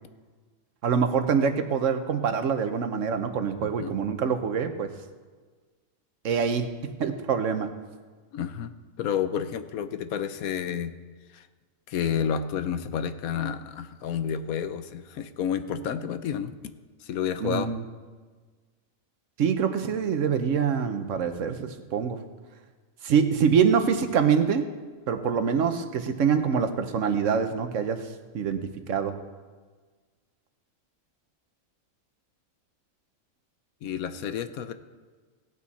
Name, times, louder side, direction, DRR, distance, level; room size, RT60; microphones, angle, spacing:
voice 1, 0.8-4.9 6.2-6.7 7.0-7.7 17.4-17.8 19.4-22.2 23.0-24.7 25.1-28.1 28.3-29.2, right 6 dB, 65° right, 8 dB, 1.2 m, -25 dB
voice 2, 8.3-8.7 9.0-10.9 11.3-11.4 11.9-16.6 17.0-17.7 33.8-34.7, left 8 dB, 85° left, 11 dB, 1.2 m, -30 dB
17.0 x 8.6 x 4.2 m, 1.4 s
omnidirectional pair, 1.5 m